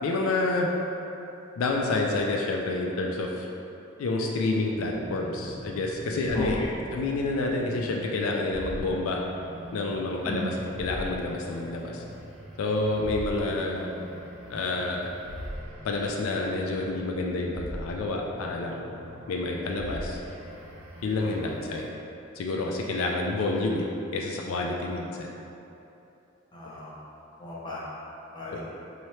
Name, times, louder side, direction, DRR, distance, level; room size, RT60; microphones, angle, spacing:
voice 1, 0.0-0.7 1.6-3.5 4.0-6.6 6.9-9.2 9.7-12.0 12.6-13.9 14.5-15.1 15.8-19.0 19.3-20.2 21.0-21.9 22.4-23.9 24.1-25.3 28.5-28.6, left 2 dB, 80° left, 0 dB, 0.4 m, -28 dB
sound 1, 4.6-21.9, equal, 70° right, 0.6 m, -42 dB
voice 2, 6.3-6.7 10.2-10.6 21.2-21.3 24.4-24.7 26.5-26.9 27.4-27.8 28.3-28.7, left 1 dB, 20° left, -7 dB, 0.7 m, -35 dB
4.3 x 2.8 x 3.1 m, 2.9 s
head